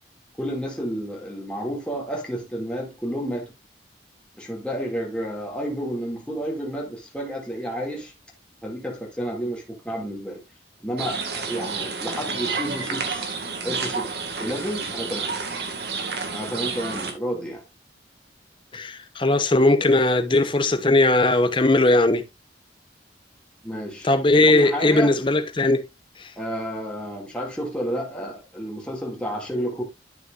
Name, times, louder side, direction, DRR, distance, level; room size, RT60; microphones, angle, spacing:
voice 1, 0.4-3.5 4.4-8.1 8.6-10.4 10.8-13.3 13.6-15.4 16.3-17.6 23.6-24.1 24.4-25.1 26.4-29.8, equal, 5° left, 2.4 m, -31 dB
sound 1, 11.0-17.1, right 4 dB, 65° right, 2.0 m, -30 dB
voice 2, 18.7-22.2 24.0-25.8 26.2-26.3, left 2 dB, 25° left, 0.9 m, -19 dB
11.5 x 6.4 x 2.5 m
head